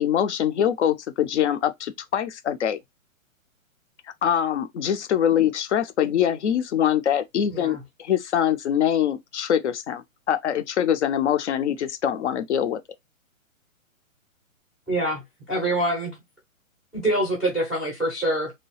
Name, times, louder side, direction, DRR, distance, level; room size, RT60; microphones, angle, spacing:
voice 1, 0.0-2.8 4.2-12.8, left 9 dB, 55° left, 0.6 m, -24 dB
voice 2, 14.9-15.2 15.5-16.2 16.9-18.5, right 1 dB, ahead, 0.5 m, -25 dB
2.8 x 2.2 x 3.1 m
figure-of-eight pair, 125°, 42 cm